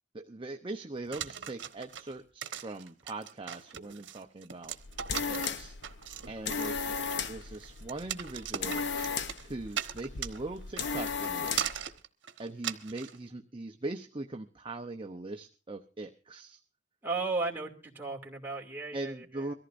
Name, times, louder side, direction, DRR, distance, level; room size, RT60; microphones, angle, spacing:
voice 1, 0.1-4.8 5.3-5.8 6.3-7.0 7.3-8.8 9.4-11.9 12.4-16.6 18.9-19.5, right 2 dB, 30° right, 4 dB, 0.7 m, -41 dB
sound 1, 1.1-13.2, right 9 dB, 85° right, 1.0 m, -39 dB
sound 2, 4.7-11.9, left 5 dB, 70° left, 0.8 m, -36 dB
voice 2, 17.0-19.5, right 3 dB, 10° right, -2 dB, 2.5 m, -35 dB
23.5 x 14.5 x 2.6 m, 0.34 s
head